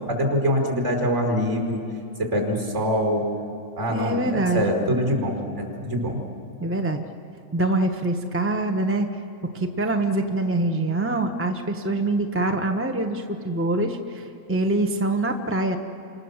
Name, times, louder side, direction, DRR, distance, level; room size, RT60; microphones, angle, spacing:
voice 1, 0.1-1.8 2.2-3.2 3.8-6.2, equal, 35° right, 1 dB, 5.2 m, -24 dB
voice 2, 3.9-4.7 6.6-7.0 7.5-9.2 9.5-15.8, right 2 dB, 10° right, 5 dB, 0.6 m, -24 dB
29.5 x 26.0 x 7.4 m, 2.8 s
omnidirectional pair, 2.2 m